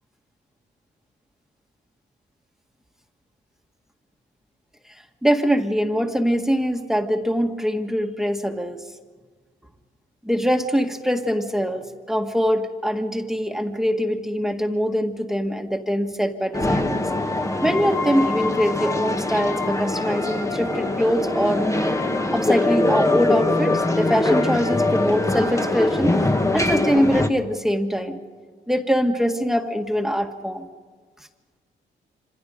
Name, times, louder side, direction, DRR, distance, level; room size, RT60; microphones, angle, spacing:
voice 1, 5.2-8.8 10.2-17.0 17.6-22.0 22.3-26.2 26.5-28.2 28.7-30.7, equal, ahead, 4 dB, 1.8 m, -23 dB
sound 1, 16.5-27.3, left 2 dB, 15° left, 1.5 m, -22 dB
27.0 x 26.5 x 5.2 m, 1.5 s
cardioid pair, 100°, 20 cm